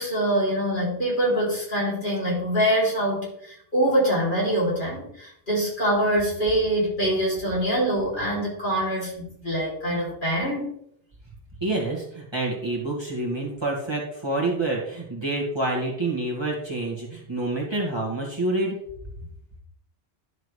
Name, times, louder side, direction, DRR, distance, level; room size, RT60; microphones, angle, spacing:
voice 1, 0.0-10.7, right 1 dB, 45° left, -5 dB, 3.3 m, -24 dB
voice 2, 11.6-18.8, right 2 dB, 20° right, -3 dB, 2.0 m, -27 dB
11.5 x 6.5 x 3.3 m, 0.73 s
omnidirectional pair, 1.2 m